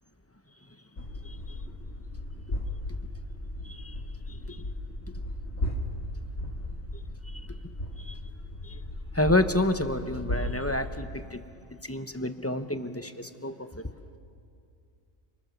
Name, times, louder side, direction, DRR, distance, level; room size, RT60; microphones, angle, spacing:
sound 1, 1.0-11.2, left 1 dB, 55° left, 2.3 m, -36 dB
voice 1, 1.2-1.6 2.5-2.6 2.9-3.0 3.6-4.0 4.3-4.7 5.1-5.2 7.2-7.5 8.0-8.2 8.6-8.8 9.1-11.4 11.8-13.9, left 1 dB, 15° left, 9 dB, 0.8 m, -30 dB
29.5 x 25.0 x 6.9 m, 2.5 s
omnidirectional pair, 1.3 m